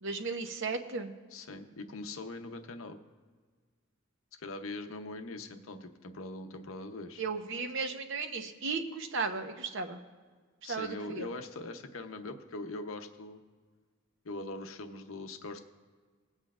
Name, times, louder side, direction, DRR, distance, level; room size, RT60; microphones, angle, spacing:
voice 1, 0.0-1.1 7.2-10.0 10.6-11.3, right 4 dB, 60° right, 5 dB, 0.9 m, -35 dB
voice 2, 1.3-3.0 4.4-7.2 10.6-13.4 14.2-15.6, left 2 dB, 70° left, 6 dB, 0.8 m, -42 dB
21.0 x 8.1 x 2.4 m, 1.5 s
head